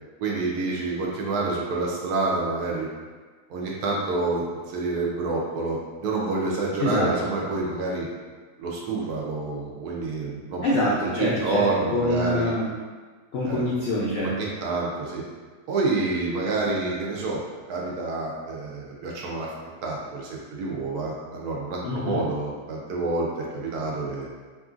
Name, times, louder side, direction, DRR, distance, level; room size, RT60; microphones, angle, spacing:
voice 1, 0.2-2.9 3.5-8.1 8.6-10.6 11.2-12.5 13.5-13.6 14.2-15.2 15.7-17.4 17.7-19.5 19.8-24.3, right 3 dB, 75° right, -3 dB, 1.1 m, -28 dB
voice 2, 6.8-7.1 10.6-12.7 13.3-14.5 21.8-22.2, left 1 dB, 85° left, -7 dB, 0.5 m, -25 dB
3.0 x 2.5 x 2.4 m, 1.4 s
omnidirectional pair, 1.7 m